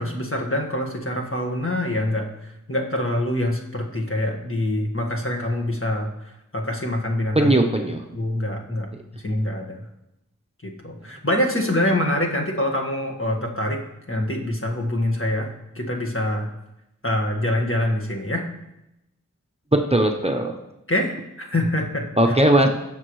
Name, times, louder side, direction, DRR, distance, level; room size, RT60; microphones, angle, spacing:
voice 1, 0.0-6.1 6.5-7.5 8.1-8.9 9.1-9.8 10.6-13.8 14.1-15.5 15.7-16.5 17.0-18.5 20.9-21.1 21.4-22.3, left 1 dB, 40° left, 0 dB, 1.7 m, -25 dB
voice 2, 7.3-8.0 19.7-20.6 22.2-22.7, right 1 dB, 20° right, 3 dB, 0.9 m, -18 dB
16.5 x 6.9 x 3.2 m, 0.88 s
wide cardioid pair, 40°, 32 cm